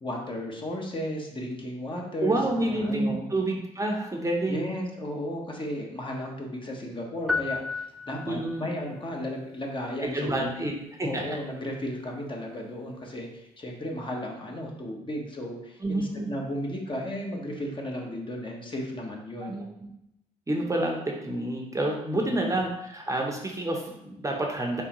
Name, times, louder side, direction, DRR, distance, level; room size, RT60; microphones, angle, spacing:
voice 1, 0.0-3.3 4.5-7.6 8.1-10.5 11.0-19.6 22.1-22.5, left 1 dB, 30° left, 0 dB, 1.1 m, -34 dB
voice 2, 2.2-4.7 8.2-8.7 10.0-10.7 11.0-11.4 15.8-16.3 19.4-19.9 20.5-24.8, right 1 dB, 20° right, 0 dB, 0.8 m, -28 dB
sound 1, 7.3-8.7, left 4 dB, ahead, 0.4 m, -32 dB
4.2 x 3.6 x 3.0 m, 0.82 s
supercardioid pair, 60°, 16 cm